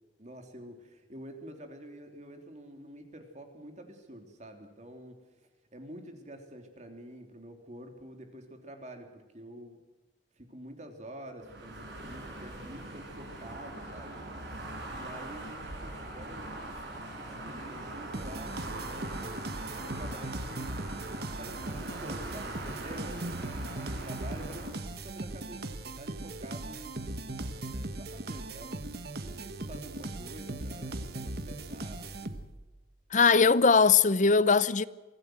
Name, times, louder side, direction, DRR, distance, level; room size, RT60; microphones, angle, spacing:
voice 1, 0.2-5.2 5.7-9.8 10.4-14.2 14.9-16.5 17.2-20.7 21.4-28.8 29.2-32.4, right 1 dB, 40° right, 3.3 m, -48 dB
sound 1, 11.4-24.7, right 1 dB, 90° right, 7.0 m, -42 dB
sound 2, 18.1-32.7, right 2 dB, 60° right, 1.5 m, -39 dB
voice 2, 33.1-34.9, left 5 dB, 45° left, 0.7 m, -21 dB
25.0 x 16.0 x 7.9 m
head